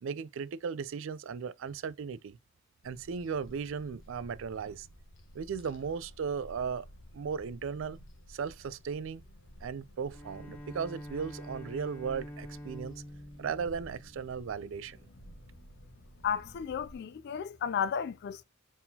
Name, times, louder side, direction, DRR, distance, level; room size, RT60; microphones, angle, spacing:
voice 1, 0.0-2.4 2.8-4.9 5.3-6.9 7.1-8.0 8.3-9.2 9.6-13.0 13.4-15.0, right 6 dB, 65° right, 0.4 m, -36 dB
sound 1, 2.8-17.0, left 1 dB, 70° left, 1.0 m, -54 dB
Bowed string instrument, 10.1-14.7, equal, 10° left, 0.7 m, -46 dB
voice 2, 16.2-18.4, left 7 dB, 55° left, 0.3 m, -33 dB
4.5 x 3.6 x 2.8 m
head